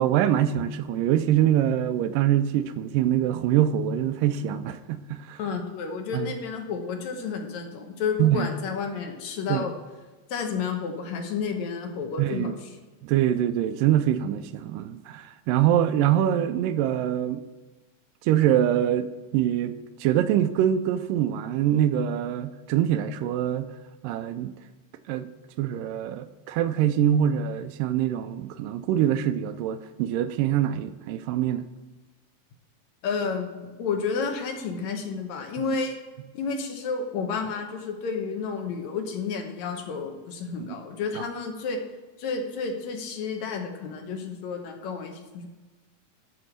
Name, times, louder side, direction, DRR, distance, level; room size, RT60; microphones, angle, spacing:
voice 1, 0.0-5.4 6.1-6.3 8.2-8.5 9.5-9.7 12.2-12.5 13.0-17.4 18.2-19.1 19.3-23.7 24.0-24.5 25.1-25.3 25.6-31.7 35.6-35.7 41.2-41.3, right 11 dB, 85° right, 2.2 m, -24 dB
voice 2, 5.4-9.7 10.3-12.5 33.0-36.0 36.3-41.8 42.2-45.5, left 5 dB, 70° left, 2.1 m, -31 dB
11.5 x 4.4 x 6.6 m
omnidirectional pair, 3.8 m